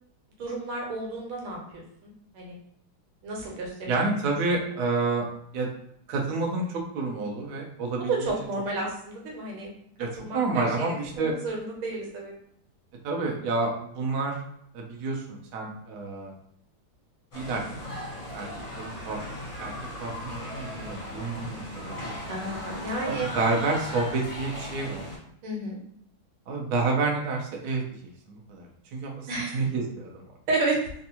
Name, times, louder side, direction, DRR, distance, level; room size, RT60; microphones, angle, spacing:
voice 1, 0.4-2.6 3.2-4.0 8.1-9.7 10.2-10.9 11.2-12.3 22.3-23.3 25.4-25.8 29.3-29.6 30.5-30.8, right 2 dB, 85° right, -1 dB, 1.7 m, -31 dB
voice 2, 3.9-5.3 5.5-5.7 6.1-8.3 10.0-11.3 13.0-14.4 14.7-16.3 17.3-17.9 18.3-18.5 18.8-19.2 19.6-19.7 20.0-22.1 23.0-25.1 26.5-29.3 29.5-30.1, right 3 dB, 65° right, 0 dB, 1.0 m, -29 dB
sound 1, 17.3-25.2, left 1 dB, 35° left, 0.8 m, -37 dB
3.5 x 2.5 x 2.8 m, 0.71 s
omnidirectional pair, 2.3 m